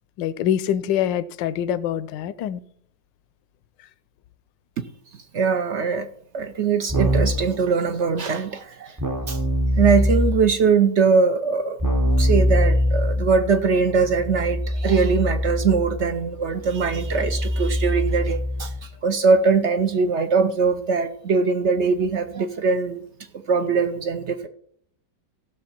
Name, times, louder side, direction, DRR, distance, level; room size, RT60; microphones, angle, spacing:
voice 1, 0.2-2.6, left 10 dB, 80° left, 16 dB, 1.3 m, -24 dB
voice 2, 5.3-6.1 6.3-9.0 9.3-9.4 9.8-11.8 12.2-23.0 23.5-24.5, right 5 dB, 65° right, 9 dB, 0.7 m, -21 dB
Keyboard (musical), 6.9-7.5 9.0-10.6 11.8-18.8, equal, 20° right, 0.5 m, -23 dB
16.5 x 6.5 x 4.4 m, 0.64 s
omnidirectional pair, 2.0 m